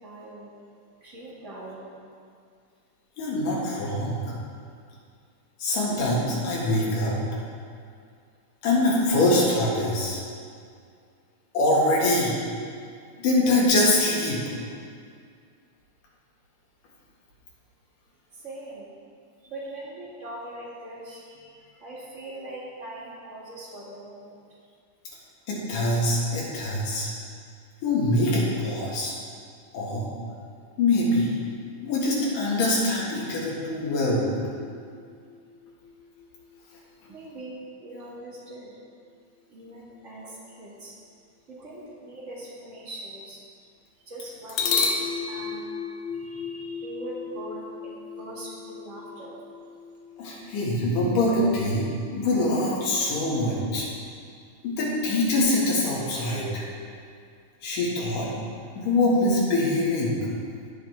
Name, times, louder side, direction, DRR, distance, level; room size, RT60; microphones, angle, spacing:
voice 1, 0.0-0.5 1.0-1.9 18.3-18.9 19.4-24.4 37.1-38.7 39.5-40.9 41.5-43.4 44.1-44.9 45.3-45.6 46.2-49.3, right 1 dB, 25° right, -6 dB, 1.8 m, -41 dB
voice 2, 3.2-4.2 5.6-7.2 8.6-10.2 11.5-12.4 13.2-14.4 25.5-27.1 27.8-29.1 29.7-30.1 30.8-31.3 31.8-34.3 50.2-53.9 54.6-56.6 57.6-58.3 58.8-60.2, left 1 dB, 90° left, -5 dB, 3.4 m, -24 dB
sound 1, 34.7-36.9 44.5-52.4, left 5 dB, 70° left, 1.9 m, -34 dB
16.5 x 6.1 x 3.5 m, 2.2 s
omnidirectional pair, 3.7 m